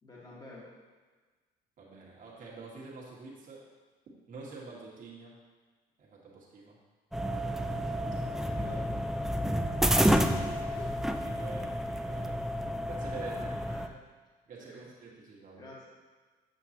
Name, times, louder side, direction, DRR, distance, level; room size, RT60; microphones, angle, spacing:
voice 1, 0.0-0.7 8.6-8.8 10.6-11.0 13.3-14.0 14.6-14.9 15.6-15.9, left 1 dB, 25° left, -5 dB, 1.7 m, -49 dB
voice 2, 1.8-3.7 4.3-5.4 6.0-6.8 8.5-8.8 11.2-12.4 12.8-13.5 14.5-15.6, right 4 dB, 50° right, -4 dB, 1.8 m, -46 dB
sound 1, 7.1-13.9, equal, ahead, 0.3 m, -30 dB
7.8 x 5.8 x 3.0 m, 1.4 s
cardioid pair, 110°, 17 cm